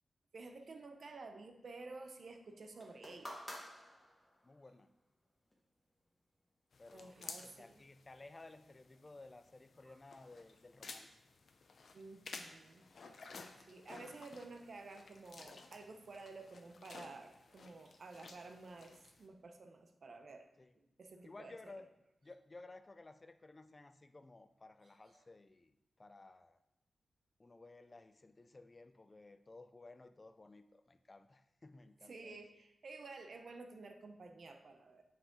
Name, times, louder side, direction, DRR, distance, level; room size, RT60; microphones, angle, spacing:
voice 1, 0.3-3.3 6.9-7.7 11.9-12.8 13.7-20.5 20.8-21.8 25.1-25.2 32.1-35.0, right 3 dB, 55° right, 6 dB, 0.7 m, -52 dB
sound 1, 2.8-4.6 5.5-5.6, equal, 10° left, 1.3 m, -50 dB
voice 2, 4.4-4.9 6.8-11.2 20.6-20.7 21.2-21.9 22.2-25.7 26.0-26.6 27.4-32.4, left 2 dB, 25° left, 11 dB, 0.3 m, -56 dB
sound 2, 6.7-19.3, left 4 dB, 60° left, 0.6 m, -55 dB
8.8 x 4.8 x 3.8 m, 0.90 s
wide cardioid pair, 140°, 0 cm